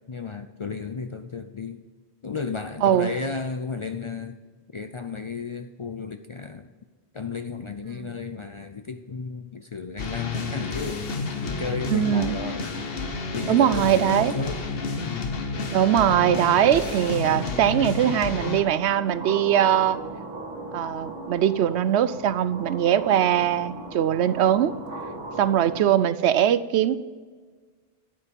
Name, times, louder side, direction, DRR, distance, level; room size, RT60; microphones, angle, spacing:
voice 1, 0.1-1.8 2.2-4.4 4.7-6.7 7.1-12.7 13.3-14.6 15.0-15.3, left 4 dB, 45° left, 8 dB, 0.4 m, -34 dB
sound 1, 10.0-18.6, left 3 dB, 65° left, 1.2 m, -30 dB
voice 2, 11.9-12.3 13.5-14.3 15.7-20.0 20.7-24.7 25.4-27.0, right 10 dB, 85° right, 14 dB, 0.9 m, -21 dB
sound 2, 15.8-25.8, right 2 dB, 50° right, 2.2 m, -38 dB
10.5 x 8.2 x 5.2 m, 1.5 s
omnidirectional pair, 1.1 m